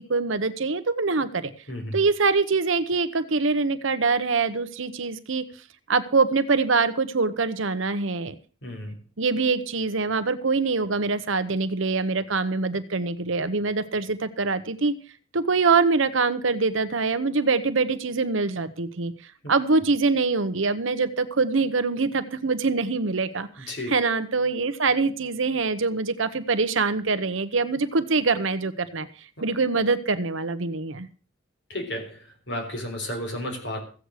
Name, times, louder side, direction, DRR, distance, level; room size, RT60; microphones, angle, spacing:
voice 1, 0.0-1.5 1.9-5.4 5.9-8.3 9.2-14.9 15.3-19.1 19.5-29.1 29.4-31.1, right 4 dB, 75° right, 11 dB, 1.0 m, -24 dB
voice 2, 1.7-2.0 8.6-9.0 19.4-19.5 23.7-23.9 29.4-29.6 31.7-33.8, left 1 dB, 60° left, 3 dB, 3.9 m, -33 dB
15.0 x 8.2 x 6.4 m, 0.40 s
head